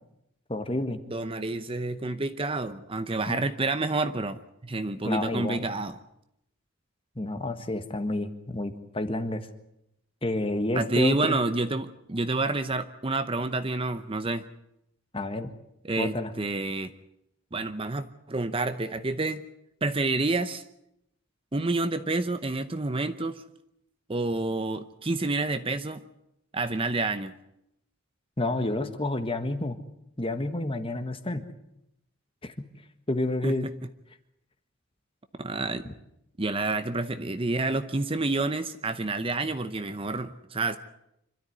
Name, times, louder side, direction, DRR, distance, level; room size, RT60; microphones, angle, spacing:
voice 1, 0.5-1.0 3.3-3.4 5.0-5.7 7.1-9.5 10.2-11.4 15.1-15.5 16.0-16.3 28.4-29.8 30.2-31.4 32.4-32.7 33.1-33.7 35.8-35.9, left 2 dB, 25° left, 8 dB, 1.5 m, -29 dB
voice 2, 1.1-6.0 10.7-14.5 15.8-16.9 17.5-19.4 19.8-20.6 21.5-23.4 24.1-26.0 26.5-27.3 33.4-33.5 35.4-35.9 36.4-40.8, right 2 dB, 25° right, 10 dB, 0.8 m, -29 dB
26.0 x 13.0 x 9.4 m, 0.83 s
head